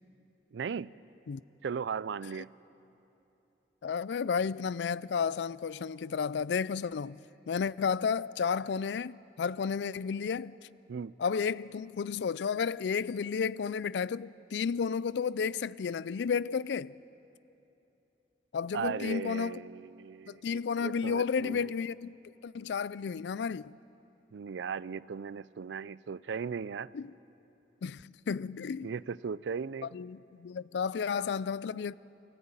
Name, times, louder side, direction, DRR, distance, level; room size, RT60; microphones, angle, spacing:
voice 1, 0.5-0.9 1.6-2.5 10.9-11.1 18.7-20.5 20.8-21.7 24.3-26.9 28.8-29.9, right 6 dB, 80° right, 0.4 m, -37 dB
voice 2, 3.8-10.6 11.2-17.0 18.5-19.6 20.3-22.2 22.4-23.7 26.9-27.1 27.8-28.9 29.8-31.9, left 6 dB, 70° left, 0.4 m, -32 dB
24.0 x 14.5 x 9.0 m
head